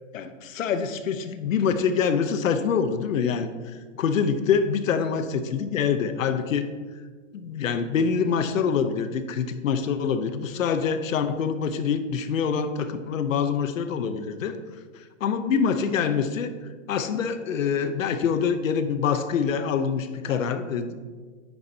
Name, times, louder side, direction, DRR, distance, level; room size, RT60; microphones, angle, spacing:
voice 1, 0.1-3.5 4.0-6.7 7.3-14.6 15.2-16.5 16.9-21.0, left 6 dB, 90° left, 9 dB, 0.8 m, -25 dB
9.8 x 7.0 x 2.8 m, 1.5 s
hypercardioid pair, 175°, 39 cm